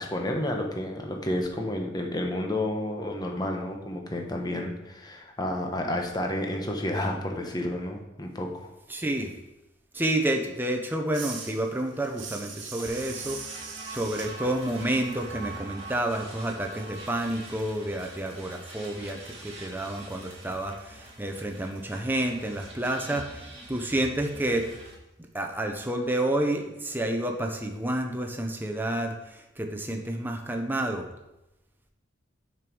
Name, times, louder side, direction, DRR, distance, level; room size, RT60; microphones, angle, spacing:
voice 1, 0.0-8.7, left 1 dB, 20° left, 2 dB, 1.0 m, -31 dB
voice 2, 8.9-9.3 9.9-24.7 25.3-31.1, right 1 dB, 10° right, 3 dB, 0.8 m, -30 dB
sound 1, 11.1-16.7 16.9-21.8, right 5 dB, 65° right, 1.4 m, -44 dB
sound 2, 12.9-25.0, right 2 dB, 30° right, 1.7 m, -44 dB
6.4 x 5.3 x 6.2 m, 0.94 s
head